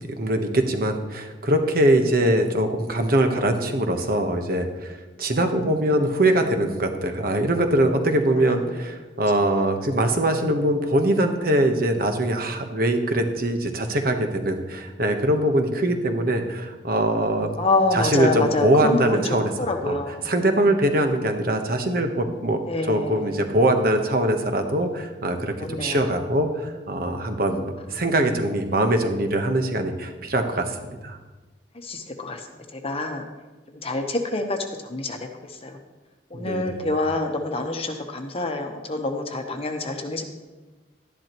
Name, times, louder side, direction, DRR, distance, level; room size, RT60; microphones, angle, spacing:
voice 1, 0.2-17.6 17.9-19.5 19.8-20.0 20.2-22.6 22.9-31.2 36.3-36.8, right 1 dB, 55° right, 6 dB, 1.1 m, -22 dB
voice 2, 17.6-19.2 19.6-20.2 22.7-23.4 25.6-26.0 31.8-32.4 32.7-33.2 33.8-34.6 34.8-35.2 35.6-35.8 36.3-40.2, left 2 dB, 35° left, 4 dB, 0.9 m, -26 dB
12.0 x 11.0 x 3.0 m, 1.2 s
head